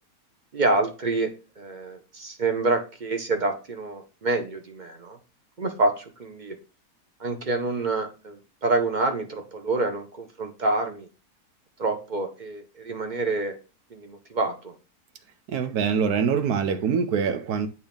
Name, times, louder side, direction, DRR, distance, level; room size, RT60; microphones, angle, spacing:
voice 1, 0.5-5.2 5.6-6.6 7.2-11.1 11.8-13.6 13.9-14.7, right 3 dB, 40° right, 0.8 m, -27 dB
voice 2, 15.5-17.7, right 6 dB, 75° right, 1.3 m, -24 dB
8.1 x 2.9 x 5.1 m
omnidirectional pair, 1.6 m